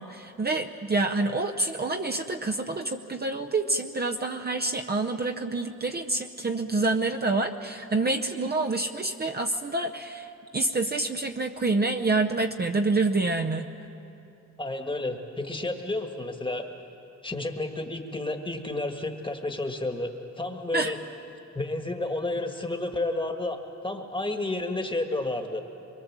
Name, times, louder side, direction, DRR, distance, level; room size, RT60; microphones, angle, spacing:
voice 1, 0.0-10.3 10.5-13.7 20.7-20.9, right 3 dB, 35° right, 3 dB, 0.7 m, -27 dB
voice 2, 14.6-16.7 17.2-21.0 21.5-25.6, left 2 dB, 15° left, 4 dB, 1.4 m, -31 dB
24.5 x 22.5 x 7.3 m, 2.8 s
wide cardioid pair, 170°, 29 cm